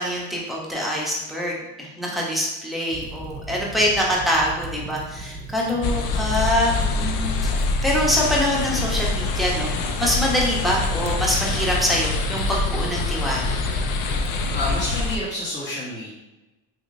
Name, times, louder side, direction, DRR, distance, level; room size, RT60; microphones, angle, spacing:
voice 1, 0.0-7.5 7.8-9.7 10.0-13.6, equal, ahead, -3 dB, 0.8 m, -24 dB
Fire, 2.9-15.0, right 2 dB, 20° right, 0.4 m, -37 dB
sound 1, 5.8-15.2, left 3 dB, 75° left, 0.5 m, -25 dB
voice 2, 14.5-16.1, left 1 dB, 35° left, -9 dB, 1.4 m, -29 dB
3.0 x 2.9 x 2.6 m, 1.0 s
supercardioid pair, 95°, 32 cm